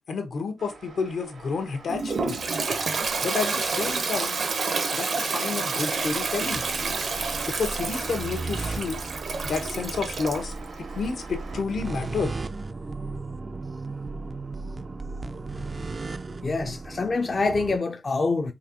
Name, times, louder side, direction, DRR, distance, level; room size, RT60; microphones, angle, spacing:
voice 1, 0.1-2.4 3.2-4.4 5.0-6.6 7.5-9.0 9.4-12.3, left 5 dB, 75° left, 1.0 m, -30 dB
sound 1, 0.6-11.6, right 4 dB, 85° right, 1.2 m, -45 dB
Toilet flush, 1.9-10.5, right 4 dB, 60° right, 0.7 m, -29 dB
sound 2, 5.1-17.8, right 3 dB, 35° right, 0.3 m, -36 dB
voice 2, 16.4-18.5, left 3 dB, 40° left, 0.5 m, -25 dB
4.1 x 3.0 x 2.7 m
wide cardioid pair, 125°, 0 cm